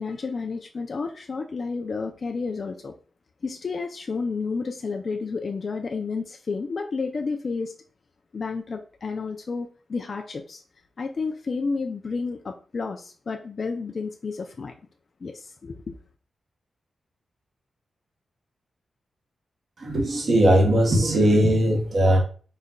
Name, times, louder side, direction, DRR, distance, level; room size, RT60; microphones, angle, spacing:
voice 1, 0.0-2.9 3.4-7.7 8.3-10.6 11.0-14.7 15.2-15.9, left 4 dB, 45° left, 3 dB, 0.3 m, -31 dB
voice 2, 19.8-22.2, right 1 dB, 45° right, -2 dB, 0.9 m, -19 dB
4.1 x 2.2 x 3.6 m, 0.40 s
wide cardioid pair, 135°, 0 cm